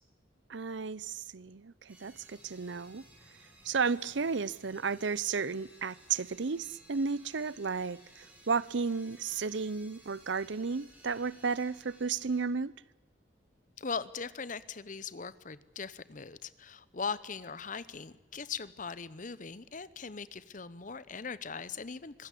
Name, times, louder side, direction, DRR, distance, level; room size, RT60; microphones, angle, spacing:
voice 1, 0.5-3.0 3.6-12.7, right 5 dB, 75° right, 0.7 m, -33 dB
sound 1, 1.9-12.4, right 1 dB, 10° right, 6.3 m, -58 dB
voice 2, 13.8-22.3, left 5 dB, 45° left, 0.9 m, -40 dB
25.0 x 16.5 x 8.4 m
head